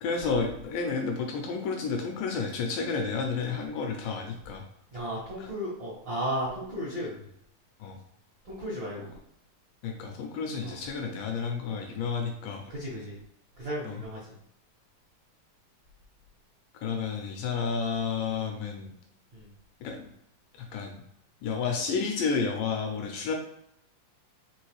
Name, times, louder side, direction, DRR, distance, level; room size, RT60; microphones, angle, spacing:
voice 1, 0.0-4.6 5.4-5.5 7.8-8.0 9.8-12.6 13.8-14.0 16.8-18.9 19.8-20.1 20.6-21.0 21.4-23.3, left 5 dB, 80° left, 3 dB, 2.0 m, -31 dB
voice 2, 4.9-7.1 8.4-9.1 10.6-10.8 12.7-13.1 13.6-14.2 19.3-19.5, equal, 60° right, -8 dB, 1.2 m, -34 dB
5.2 x 3.1 x 3.1 m, 0.76 s
omnidirectional pair, 4.2 m